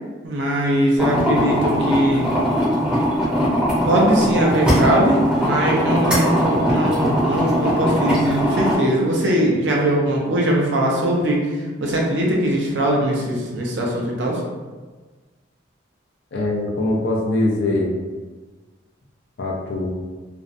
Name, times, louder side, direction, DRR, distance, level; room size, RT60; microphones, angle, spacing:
voice 1, 0.2-2.3 3.8-11.5 11.8-14.4, right 1 dB, 70° right, -2 dB, 0.5 m, -20 dB
sound 1, 1.0-8.7, equal, 5° right, 0.6 m, -20 dB
voice 2, 16.3-17.9 19.4-19.9, left 2 dB, 60° left, -2 dB, 0.4 m, -22 dB
2.5 x 2.0 x 2.5 m, 1.3 s
head